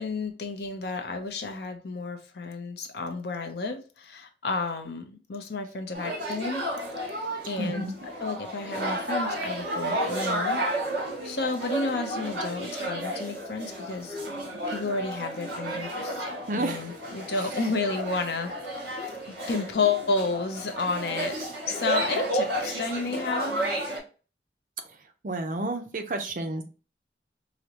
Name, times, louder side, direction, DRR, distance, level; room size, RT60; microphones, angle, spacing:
voice 1, 0.0-6.6 7.5-7.9 8.2-10.6 11.2-14.2 14.7-16.2 16.5-18.5 19.0-19.1 19.5-21.3 21.7-23.6, left 3 dB, 70° left, 5 dB, 0.6 m, -31 dB
sound 1, 5.9-24.0, right 1 dB, 65° right, 1.4 m, -32 dB
voice 2, 7.6-7.9 16.5-17.0 17.4-17.5 25.2-26.6, right 2 dB, 45° right, 6 dB, 0.5 m, -31 dB
4.9 x 2.1 x 2.8 m, 0.35 s
head